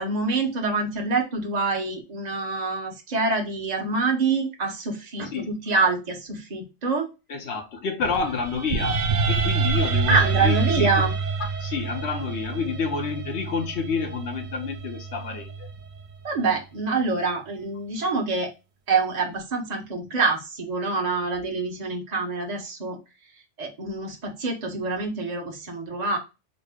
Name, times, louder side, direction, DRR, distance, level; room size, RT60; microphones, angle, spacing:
voice 1, 0.0-7.1 10.1-11.1 16.2-18.5 18.9-23.0 23.6-26.2, right 3 dB, 40° right, 0.9 m, -26 dB
voice 2, 7.3-9.0 9.3-11.1 11.6-15.7, left 5 dB, 70° left, 1.0 m, -29 dB
sound 1, 8.0-16.2, right 4 dB, 55° right, 0.5 m, -27 dB
4.1 x 2.1 x 3.5 m
omnidirectional pair, 1.2 m